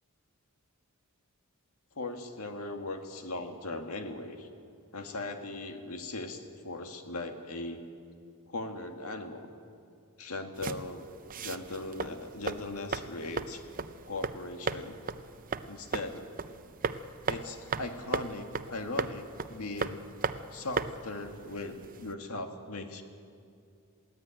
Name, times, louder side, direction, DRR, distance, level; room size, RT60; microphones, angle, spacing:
voice 1, 2.0-4.5 4.9-7.8 8.5-9.5 10.2-11.1 11.4-13.6 14.0-15.0 15.7-16.4 17.3-20.0 20.5-23.0, left 2 dB, 90° left, 5 dB, 1.9 m, -39 dB
sound 1, 10.6-22.1, right 4 dB, 40° right, 0.6 m, -37 dB
22.0 x 16.0 x 9.0 m, 2.5 s
head